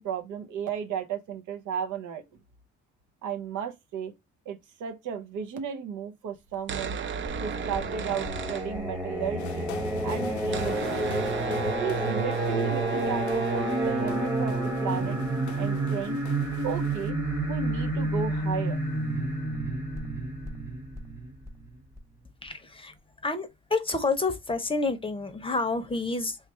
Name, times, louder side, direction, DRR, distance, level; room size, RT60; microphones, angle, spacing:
voice 1, 0.0-2.2 3.2-4.1 4.5-7.0 7.4-9.7 10.0-11.1 11.8-15.2 15.6-16.2 16.6-17.2 17.5-18.8, right 7 dB, 85° right, 0.8 m, -34 dB
sound 1, 6.5-9.3 9.5-9.6 9.8-19.2, right 7 dB, 40° right, 0.4 m, -36 dB
Singing, 7.2-22.0, right 1 dB, 10° right, 0.9 m, -30 dB
sound 2, 9.4-17.1, left 10 dB, 70° left, 0.6 m, -44 dB
voice 2, 22.4-23.0 23.2-26.4, left 3 dB, 20° left, 0.7 m, -29 dB
3.2 x 2.4 x 4.1 m
cardioid pair, 90°, 30 cm